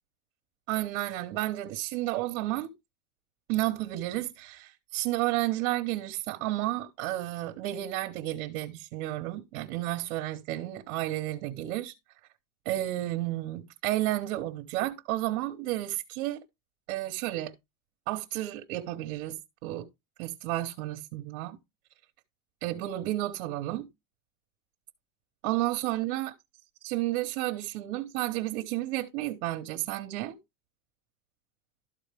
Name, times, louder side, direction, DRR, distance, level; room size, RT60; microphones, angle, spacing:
voice 1, 0.7-2.7 3.5-11.9 12.6-16.4 16.9-17.5 18.1-19.9 20.2-21.6 22.6-23.9 25.4-26.3 26.8-30.4, right 16 dB, 60° right, 1.0 m, -32 dB
12.5 x 4.2 x 3.3 m
supercardioid pair, 170°, 42 cm